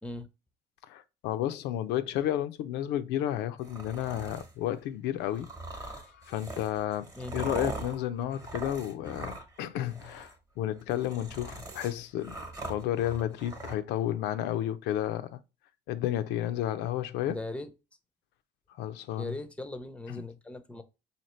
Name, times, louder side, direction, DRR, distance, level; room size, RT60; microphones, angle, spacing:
voice 1, 0.9-5.5 5.8-12.4 12.7-15.4 15.9-17.4 18.8-19.3 20.1-20.2, left 12 dB, 85° left, 0.4 m, -32 dB
sound 1, 3.6-4.5 5.3-9.6 9.9-10.3 10.8-13.7, right 2 dB, 20° right, 0.9 m, -41 dB
voice 2, 17.3-17.7 19.2-20.8, left 2 dB, 5° left, 0.5 m, -39 dB
4.2 x 2.8 x 3.0 m
cardioid pair, 110°, 17 cm